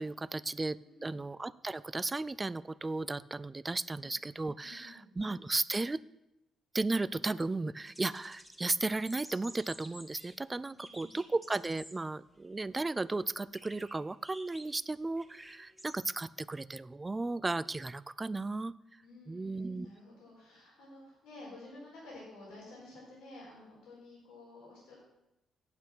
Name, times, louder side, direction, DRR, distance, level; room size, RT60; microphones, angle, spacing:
voice 1, 0.0-6.0 6.7-18.7 19.3-19.9, right 3 dB, 20° right, 18 dB, 0.3 m, -35 dB
voice 2, 0.8-1.2 3.9-4.1 4.6-5.1 10.7-11.2 19.0-25.0, left 2 dB, 90° left, -5 dB, 4.5 m, -52 dB
sound 1, 7.9-8.6 8.9-10.3 10.8-12.0 12.4-12.5 13.5-16.0, equal, 5° left, 1.6 m, -52 dB
8.6 x 8.2 x 6.0 m, 0.89 s
cardioid pair, 90°, 0 cm